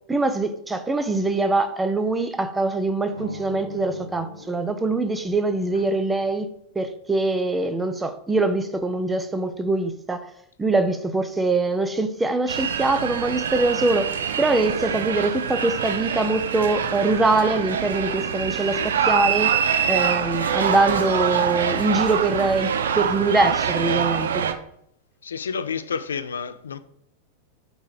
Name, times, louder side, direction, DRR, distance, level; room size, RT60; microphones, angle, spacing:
voice 1, 0.1-6.5 6.7-10.3 10.6-19.6 19.9-24.4, right 2 dB, 10° right, 0.7 m, -23 dB
sound 1, 3.0-5.7, left 1 dB, 90° right, 0.9 m, -41 dB
sound 2, 12.5-24.5, right 7 dB, 65° right, 0.6 m, -25 dB
Writing, 19.7-22.7 23.0-23.1 23.8-23.9, left 1 dB, 90° left, 1.1 m, -39 dB
voice 2, 25.2-26.8, left 6 dB, 70° left, 0.5 m, -29 dB
9.0 x 3.4 x 4.9 m
figure-of-eight pair, 90°, 0 cm